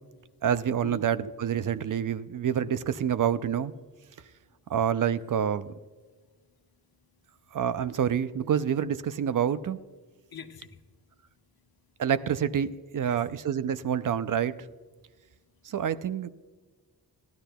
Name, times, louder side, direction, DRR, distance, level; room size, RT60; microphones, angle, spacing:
voice 1, 0.4-3.7 4.7-5.7 7.5-9.8 12.0-14.6 15.6-16.3, right 8 dB, 60° right, 14 dB, 0.5 m, -27 dB
voice 2, 4.2-4.7 6.1-6.2 6.5-7.6 10.3-11.2 11.8-11.9 13.0-13.3 15.0-15.1 15.4-15.6, left 6 dB, 75° left, 6 dB, 1.0 m, -49 dB
16.0 x 11.5 x 2.2 m, 1.4 s
wide cardioid pair, 170°, 37 cm